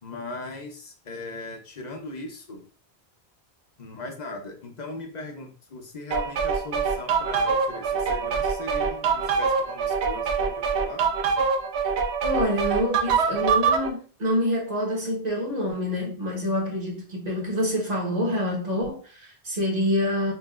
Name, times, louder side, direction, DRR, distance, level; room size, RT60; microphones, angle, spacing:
voice 1, 0.0-2.7 3.8-11.1, left 2 dB, 45° left, 0.8 m, -38 dB
sound 1, 6.1-13.9, right 5 dB, 85° right, 1.0 m, -24 dB
voice 2, 12.2-20.3, equal, 40° right, 1.4 m, -26 dB
5.9 x 2.7 x 2.4 m
omnidirectional pair, 1.1 m